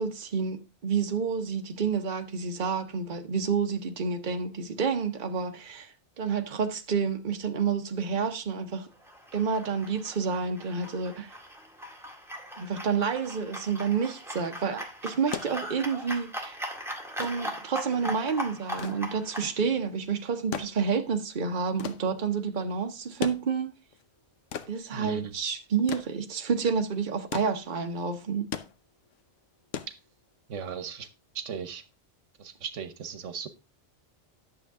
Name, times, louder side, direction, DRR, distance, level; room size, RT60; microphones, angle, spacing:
voice 1, 0.0-8.9 9.3-11.3 12.6-16.6 17.2-23.7 24.7-28.5, right 6 dB, 45° right, 1.1 m, -29 dB
sound 1, 9.0-19.5, equal, ahead, 1.8 m, -39 dB
sound 2, 15.3-30.6 31.8-31.9, left 8 dB, 85° left, 1.1 m, -40 dB
voice 2, 24.9-25.3 30.5-31.1 31.3-31.8 32.4-33.5, right 6 dB, 85° right, 1.3 m, -36 dB
11.0 x 7.1 x 3.6 m
omnidirectional pair, 1.2 m